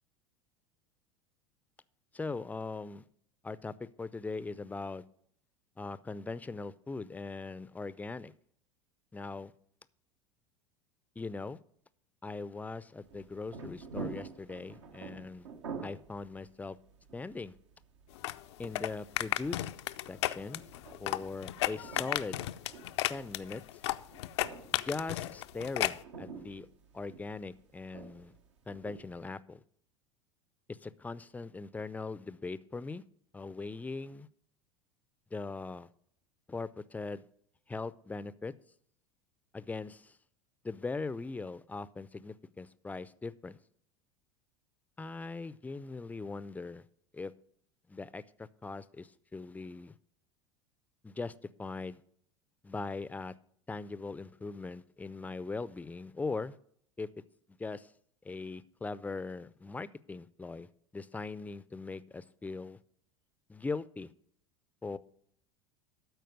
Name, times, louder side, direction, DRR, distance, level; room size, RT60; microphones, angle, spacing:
voice 1, 2.1-3.0 3.4-5.0 5.8-8.3 9.1-9.5 11.2-11.6 12.2-15.5 15.8-16.8 17.1-17.5 18.6-19.7 20.1-20.6 21.0-22.4 23.1-23.6 24.7-26.7 26.9-28.3 28.7-29.6 30.7-33.0 33.3-34.3 35.3-35.9 36.5-37.2 37.7-38.5 39.5-40.1 40.6-43.6 45.0-46.8 47.1-47.3 47.9-49.9 51.0-51.3 51.6-52.0 52.6-53.3 53.7-56.6 57.0-57.1 57.6-57.9 58.2-60.7 60.9-62.8 63.5-64.1 64.8-65.0, left 3 dB, 10° left, 0.4 m, -40 dB
sound 1, 13.0-29.3, right 4 dB, 75° right, 1.1 m, -48 dB
sound 2, 18.2-26.0, left 15 dB, 65° left, 0.5 m, -34 dB
12.5 x 4.5 x 6.7 m
hypercardioid pair, 80°, 15 cm